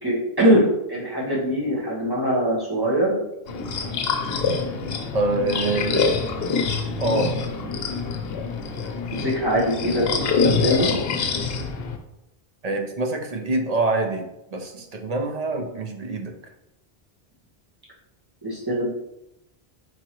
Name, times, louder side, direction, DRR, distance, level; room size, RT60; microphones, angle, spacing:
voice 1, 0.0-3.1 9.2-10.9 18.4-18.9, equal, 20° right, -7 dB, 1.5 m, -22 dB
sound 1, 3.5-12.0, left 5 dB, 75° left, 0.8 m, -25 dB
voice 2, 5.1-6.1 7.0-7.3 12.6-16.3, right 2 dB, 45° right, 4 dB, 0.6 m, -25 dB
4.6 x 3.6 x 3.0 m, 0.87 s
omnidirectional pair, 1.0 m